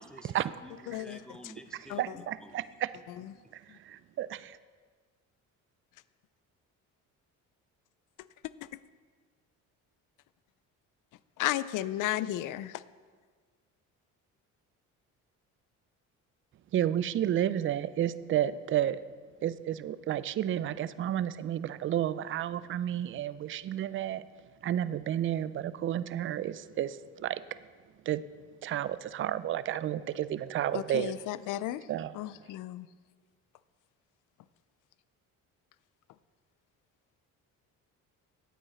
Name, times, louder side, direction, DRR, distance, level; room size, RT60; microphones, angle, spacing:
voice 1, 0.1-2.7, equal, ahead, 6 dB, 0.7 m, -51 dB
voice 2, 0.9-1.2 1.9-2.1 3.2-3.3 11.4-12.8 30.7-31.9 32.1-32.9, left 14 dB, 65° left, 17 dB, 0.5 m, -34 dB
voice 3, 2.0-2.9 3.5-4.6 16.7-19.0 19.4-24.3 24.6-27.4 28.1-28.2 28.6-31.1 31.9-32.1, right 11 dB, 40° right, 16 dB, 0.4 m, -31 dB
9.2 x 8.8 x 4.3 m, 1.6 s
cardioid pair, 90°, 33 cm